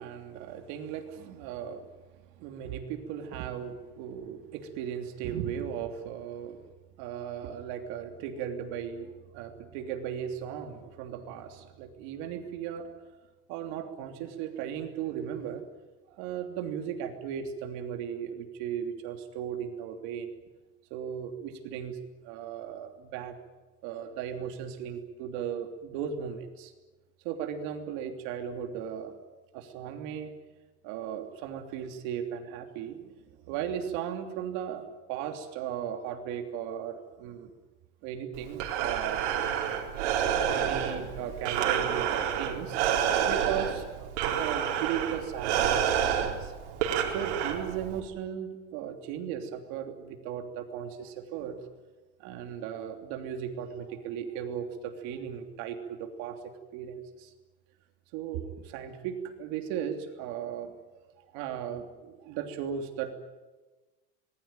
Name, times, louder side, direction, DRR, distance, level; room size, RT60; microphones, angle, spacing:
voice 1, 0.0-1.9 2.1-6.6 7.0-13.1 13.5-15.6 16.1-20.3 20.9-22.0 22.2-23.3 23.8-26.7 27.2-29.1 29.5-30.3 30.8-33.1 33.5-37.5 38.0-39.3 40.2-46.5 47.1-51.6 52.2-56.4 56.7-57.3 58.1-60.8 61.3-63.1, right 8 dB, 55° right, 6 dB, 3.2 m, -36 dB
Breathing, 38.3-48.0, right 9 dB, 90° right, 4.5 m, -29 dB
25.5 x 20.5 x 9.1 m, 1.2 s
cardioid pair, 170°, 34 cm